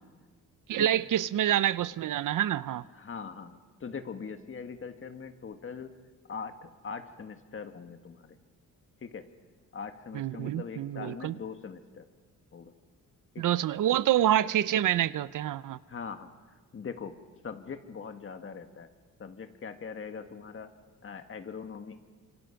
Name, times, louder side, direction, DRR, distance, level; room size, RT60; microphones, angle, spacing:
voice 1, 0.7-2.8 10.1-11.3 13.4-15.8, right 12 dB, 65° right, 0.6 m, -27 dB
voice 2, 2.9-5.9 6.3-8.4 9.0-9.2 9.7-12.1 12.5-12.8 13.4-13.5 15.9-16.3 16.7-17.1 17.4-18.9 19.2-20.7 21.0-22.0, left 5 dB, 40° left, 1.7 m, -41 dB
29.5 x 26.0 x 5.9 m
cardioid pair, 140°, 33 cm